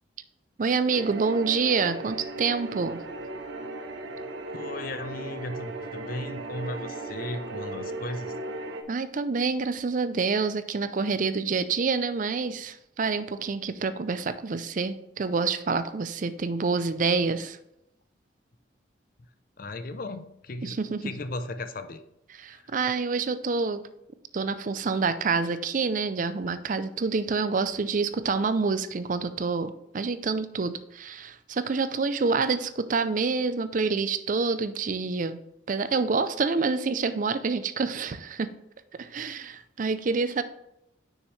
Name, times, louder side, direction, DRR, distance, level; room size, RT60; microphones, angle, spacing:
voice 1, 0.6-3.0 8.9-17.6 20.6-21.0 22.4-23.8 24.3-35.4 35.7-38.5 38.9-40.4, right 4 dB, 45° right, 13 dB, 0.4 m, -27 dB
sound 1, 0.9-8.8, right 3 dB, 65° right, 0.8 m, -37 dB
voice 2, 4.5-8.4 19.6-22.0 22.5-22.7, left 2 dB, 50° left, 10 dB, 0.6 m, -36 dB
6.4 x 6.4 x 3.2 m, 0.81 s
head